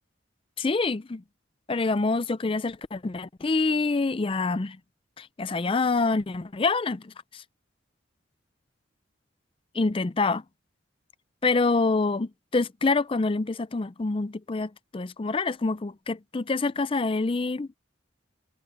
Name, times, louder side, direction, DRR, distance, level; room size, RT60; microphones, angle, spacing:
voice 1, 0.6-1.2 1.7-4.8 5.2-7.4 9.7-10.4 11.4-17.7, left 3 dB, 30° left, 0.4 m, -26 dB
head